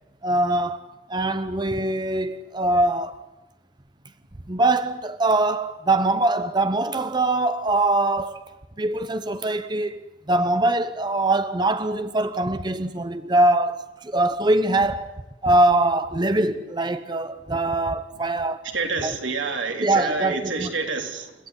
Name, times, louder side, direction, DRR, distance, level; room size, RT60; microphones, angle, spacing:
voice 1, 0.2-3.2 4.5-8.4 8.8-15.1 15.4-18.6 19.0-19.2 19.8-20.7, right 2 dB, 25° right, 0.8 m, -23 dB
voice 2, 18.7-21.3, right 4 dB, 85° right, 3.8 m, -28 dB
29.5 x 16.0 x 9.9 m
head